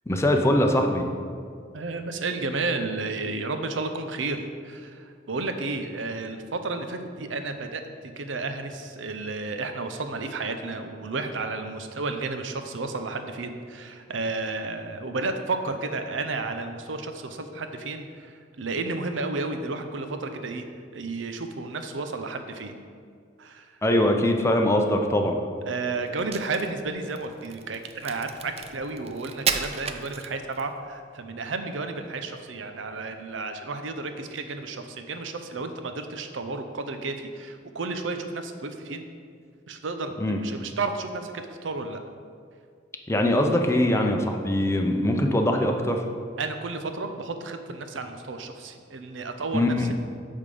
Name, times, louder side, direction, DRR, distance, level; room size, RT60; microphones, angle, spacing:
voice 1, 0.1-1.1 23.8-25.4 40.2-40.4 43.1-46.0 49.5-49.9, left 1 dB, 15° left, 3 dB, 0.6 m, -22 dB
voice 2, 1.7-20.6 20.9-22.8 23.4-23.8 25.7-39.1 39.7-42.0 46.4-49.9, right 3 dB, 85° right, 7 dB, 0.7 m, -32 dB
Crack, 26.1-30.7, right 7 dB, 35° right, 0.4 m, -33 dB
8.5 x 3.7 x 6.7 m, 2.2 s
head